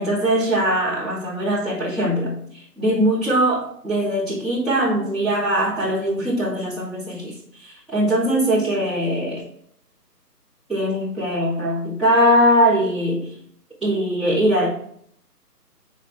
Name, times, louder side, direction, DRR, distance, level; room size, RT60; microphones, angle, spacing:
voice 1, 0.0-9.4 10.7-13.3 13.8-14.7, equal, ahead, -14 dB, 2.5 m, -21 dB
7.1 x 4.1 x 3.5 m, 0.66 s
figure-of-eight pair, 155°, 48 cm